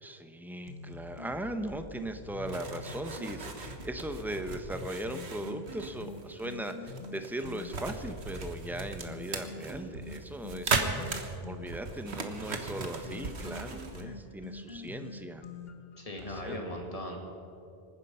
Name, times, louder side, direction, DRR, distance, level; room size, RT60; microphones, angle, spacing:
voice 1, 0.0-15.4 16.2-16.8, right 1 dB, ahead, 8 dB, 0.7 m, -39 dB
sound 1, 0.6-7.7 8.2-11.7 12.2-16.6, left 3 dB, 65° left, 1.4 m, -45 dB
sound 2, 2.5-14.0, right 4 dB, 80° right, 1.6 m, -37 dB
voice 2, 16.0-17.2, left 1 dB, 35° left, 1 dB, 2.4 m, -38 dB
25.5 x 10.0 x 5.6 m, 2.6 s
omnidirectional pair, 1.1 m